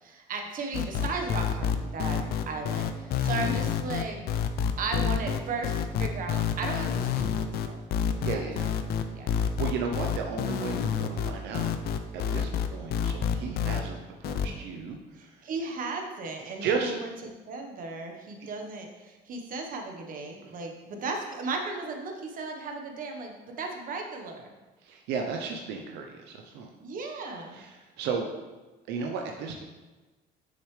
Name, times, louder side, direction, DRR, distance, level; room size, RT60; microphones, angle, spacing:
voice 1, 0.0-4.2 4.8-7.7 8.3-8.4 9.1-9.3 15.2-24.5 26.8-27.6, right 3 dB, 55° right, 3 dB, 1.2 m, -36 dB
sound 1, 0.7-13.8 14.2-14.5, left 8 dB, 70° left, 0.6 m, -28 dB
voice 2, 8.2-8.7 9.3-11.7 12.1-15.5 16.6-16.9 24.8-26.7 27.5-28.3 28.9-29.6, right 5 dB, 85° right, 2 dB, 0.7 m, -34 dB
6.5 x 6.5 x 3.2 m, 1.2 s
cardioid pair, 110°, 17 cm